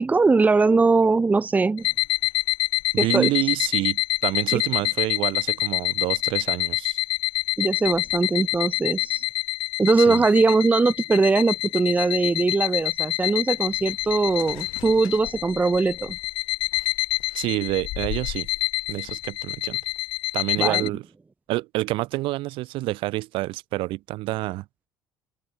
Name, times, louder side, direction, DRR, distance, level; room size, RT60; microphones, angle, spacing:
voice 1, 0.0-1.9 3.0-3.3 4.5-4.6 7.6-9.2 9.8-16.2 20.6-20.9, right 4 dB, 15° right, 0.6 m, -21 dB
sound 1, 1.8-20.9, left 18 dB, 65° left, 0.4 m, -27 dB
voice 2, 2.9-7.0 10.1-10.2 17.3-18.5 18.9-19.8 20.3-21.1 21.5-24.6, right 19 dB, 70° right, 1.3 m, -28 dB
sound 2, 12.0-12.1 13.0-16.1 16.6-17.6, left 37 dB, 80° left, 3.5 m, -48 dB
supercardioid pair, 85°, 9 cm